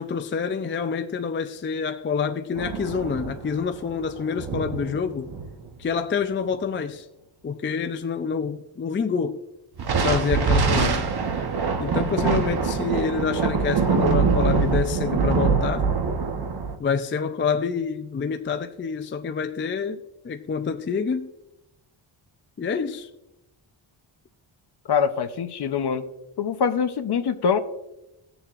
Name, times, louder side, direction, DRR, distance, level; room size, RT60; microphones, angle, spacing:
voice 1, 0.0-5.3 5.8-7.1 7.4-9.4 10.0-11.1 11.8-15.9 16.8-21.3 22.6-23.1, left 6 dB, 25° left, 0.3 m, -27 dB
sound 1, 2.6-5.8 9.8-16.8, right 5 dB, 50° right, 1.0 m, -24 dB
voice 2, 24.9-26.1 26.4-27.6, left 6 dB, 55° left, 0.7 m, -24 dB
18.5 x 6.9 x 2.4 m
wide cardioid pair, 150°, 50 cm